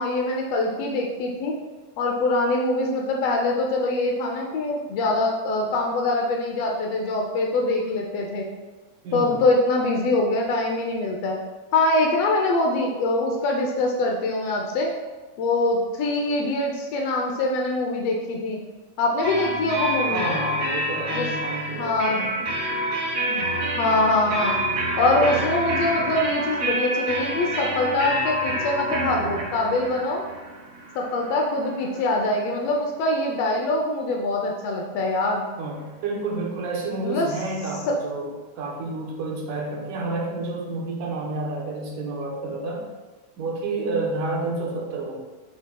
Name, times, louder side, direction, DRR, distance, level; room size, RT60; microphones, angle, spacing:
voice 1, 0.0-1.5 2.0-8.5 9.1-11.4 11.7-14.9 15.4-18.6 19.0-20.3 21.1-21.3 21.8-22.3 23.3-23.5 23.8-24.6 25.0-30.2 30.9-35.5 37.0-37.3 37.9-38.0, left 2 dB, 85° left, 0 dB, 1.4 m, -23 dB
voice 2, 9.0-9.4 20.0-23.0 35.6-42.9 43.4-45.2, right 2 dB, 85° right, -2 dB, 2.5 m, -30 dB
sound 1, 19.2-32.8, right 1 dB, 65° right, 2.6 m, -28 dB
10.5 x 4.1 x 2.2 m, 1.2 s
omnidirectional pair, 3.6 m